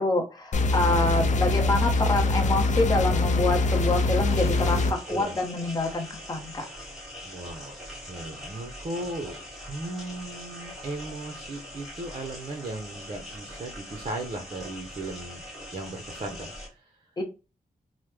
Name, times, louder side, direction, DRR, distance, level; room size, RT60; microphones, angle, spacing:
voice 1, 0.0-6.7 17.2-17.3, left 2 dB, 25° left, 3 dB, 0.8 m, -26 dB
sound 1, 0.5-4.9, left 2 dB, 55° left, 0.5 m, -23 dB
sound 2, 4.3-16.7, equal, ahead, 1.1 m, -42 dB
voice 2, 5.1-5.4 7.2-7.8 8.1-9.4 9.7-15.4 15.7-17.1, right 2 dB, 40° right, 4 dB, 0.6 m, -37 dB
3.1 x 2.0 x 3.2 m, 0.30 s
wide cardioid pair, 125°, 15 cm